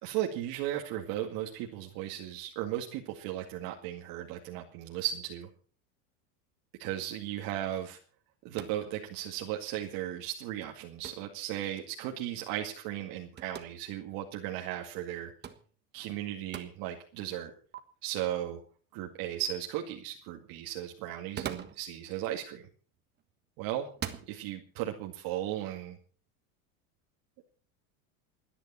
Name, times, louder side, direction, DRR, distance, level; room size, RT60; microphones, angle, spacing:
voice 1, 0.0-5.5 6.8-8.0 8.4-15.3 15.9-17.5 18.0-18.6 18.9-22.7 23.6-23.9 24.3-26.0, right 12 dB, 55° right, 2 dB, 2.1 m, -36 dB
sound 1, 8.5-8.9 11.0-11.3 13.4-13.7 15.4-15.7 16.5-16.7 17.7-17.8 21.1-21.9 23.0-23.3 23.9-24.3, right 8 dB, 25° right, 1.5 m, -40 dB
28.5 x 10.0 x 4.3 m, 0.42 s
supercardioid pair, 140°, 41 cm